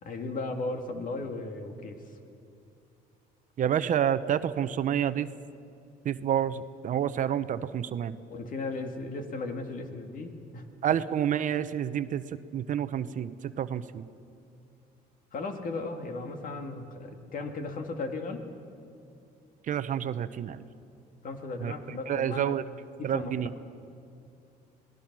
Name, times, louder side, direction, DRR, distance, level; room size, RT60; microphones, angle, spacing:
voice 1, 0.0-2.2 8.3-11.0 15.3-18.5 21.2-22.6 23.0-23.3, left 3 dB, 55° left, 5 dB, 2.3 m, -36 dB
voice 2, 3.6-5.3 6.1-8.1 10.8-12.2 12.5-13.3 13.6-14.0 19.7-20.6 21.6-21.7 22.1-22.6 23.1-23.5, right 9 dB, 50° right, 13 dB, 0.8 m, -28 dB
26.5 x 19.0 x 6.2 m, 2.6 s
cardioid pair, 110°, 17 cm